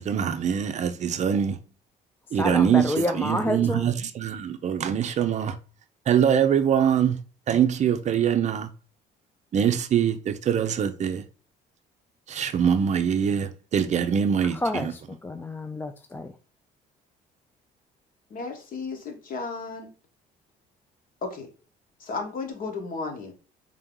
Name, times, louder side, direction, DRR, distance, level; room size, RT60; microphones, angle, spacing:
voice 1, 0.0-1.6 2.3-5.6 6.1-7.2 7.5-8.7 9.5-11.2 12.3-14.9, right 8 dB, 45° right, 0.5 m, -23 dB
voice 2, 2.3-3.9 14.4-16.3, left 1 dB, 10° left, 0.3 m, -29 dB
voice 3, 18.3-19.9 21.2-21.5 22.0-23.3, left 4 dB, 55° left, 1.3 m, -34 dB
3.7 x 2.8 x 3.6 m
cardioid pair, 110°, 17 cm